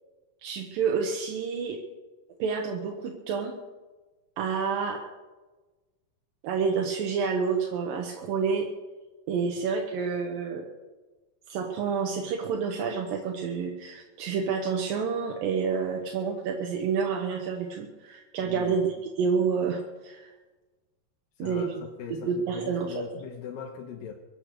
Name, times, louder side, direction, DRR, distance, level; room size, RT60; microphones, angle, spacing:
voice 1, 0.4-1.8 2.4-3.5 4.4-5.0 6.4-8.7 9.3-10.7 11.5-18.9 19.2-20.3 21.4-21.8 22.3-22.9, right 5 dB, 80° right, 1 dB, 3.0 m, -29 dB
voice 2, 18.4-18.8 21.4-24.1, left 7 dB, 85° left, 1 dB, 3.0 m, -40 dB
23.0 x 8.8 x 6.7 m, 1.2 s
omnidirectional pair, 3.9 m